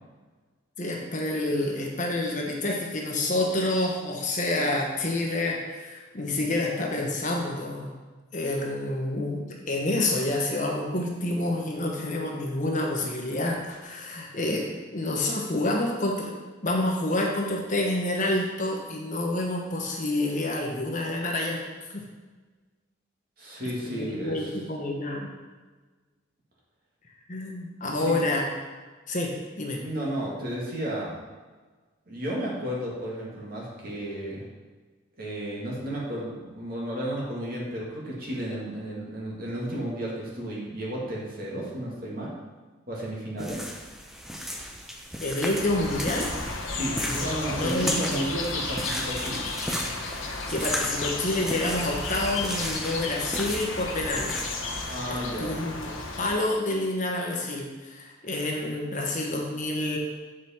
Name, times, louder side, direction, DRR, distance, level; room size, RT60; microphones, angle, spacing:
voice 1, 0.8-7.9 8.3-16.3 16.6-21.6 21.9-22.0 23.9-25.3 27.3-28.5 29.1-29.8 45.2-46.3 47.0-48.0 50.2-54.4 55.1-55.9 56.2-60.0, left 2 dB, 40° left, 0 dB, 1.1 m, -28 dB
voice 2, 23.4-24.6 27.9-28.2 29.8-31.2 32.1-34.5 35.2-42.4 42.9-43.7 46.7-49.5 54.9-55.6, right 1 dB, 50° right, -4 dB, 2.1 m, -33 dB
sound 1, 43.4-55.0, equal, ahead, 0.6 m, -35 dB
sound 2, 45.4-56.3, left 3 dB, 85° left, 1.1 m, -33 dB
8.2 x 5.0 x 4.3 m, 1.3 s
head